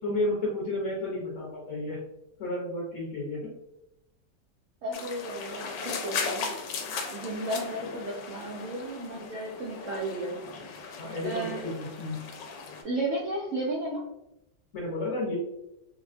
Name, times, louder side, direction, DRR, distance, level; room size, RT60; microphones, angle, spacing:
voice 1, 0.0-2.0 2.4-3.5 11.0-12.2 14.7-15.4, left 2 dB, 55° left, -6 dB, 1.0 m, -32 dB
voice 2, 4.8-6.5 7.1-10.4 11.2-11.7 12.8-14.0, right 1 dB, 85° right, -3 dB, 0.6 m, -33 dB
sound 1, 4.9-12.8, left 5 dB, 80° left, 1.2 m, -37 dB
3.4 x 2.2 x 2.4 m, 0.86 s
omnidirectional pair, 1.9 m